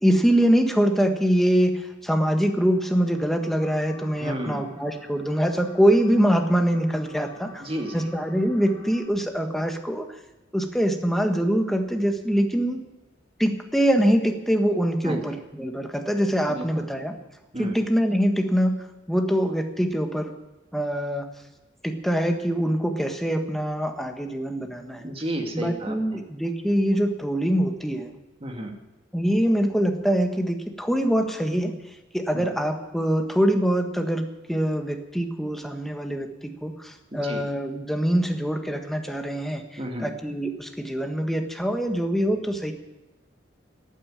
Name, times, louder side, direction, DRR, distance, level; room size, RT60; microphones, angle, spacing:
voice 1, 0.0-7.6 7.9-10.1 10.5-12.8 13.4-17.1 17.6-20.3 20.7-21.3 21.8-25.1 25.5-28.1 29.1-31.7 32.1-42.7, equal, ahead, 4 dB, 1.5 m, -24 dB
sound 1, 2.6-9.1, left 2 dB, 20° left, 4.9 m, -49 dB
voice 2, 4.2-4.7 7.6-8.1 15.0-15.2 16.5-16.9 17.5-17.8 25.0-26.0 28.4-28.7 32.3-32.5 37.1-37.4 39.8-40.1, right 1 dB, 30° right, 3 dB, 2.2 m, -32 dB
12.5 x 9.3 x 10.0 m, 1.0 s
head